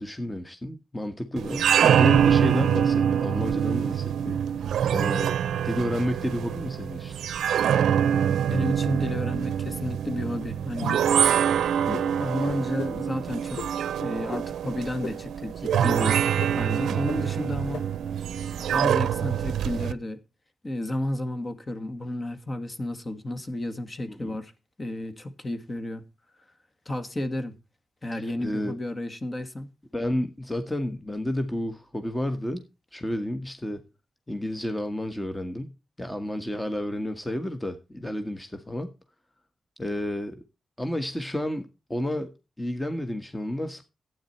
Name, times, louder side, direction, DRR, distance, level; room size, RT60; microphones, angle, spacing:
voice 1, 0.0-4.4 4.9-5.3 5.6-7.1 11.9-12.1 24.1-24.3 28.1-28.8 29.9-32.6 32.9-33.8 34.3-38.9 39.8-40.4 40.8-43.8, left 1 dB, 15° left, 1.6 m, -31 dB
sound 1, 1.4-19.9, right 9 dB, 85° right, 0.5 m, -25 dB
voice 2, 8.5-10.9 12.2-16.2 16.5-17.8 18.7-20.2 20.6-24.5 24.8-26.0 26.9-27.6 28.0-29.7, left 1 dB, 35° left, 2.0 m, -32 dB
sound 2, 10.7-11.2 11.9-12.1 12.8-12.9 13.6-13.7 14.3-14.4 15.0-15.1 15.7-15.8 16.4-16.5 17.1-17.2 17.7-17.8, left 5 dB, 85° left, 1.5 m, -34 dB
12.0 x 9.2 x 4.4 m
supercardioid pair, 50°, 0 cm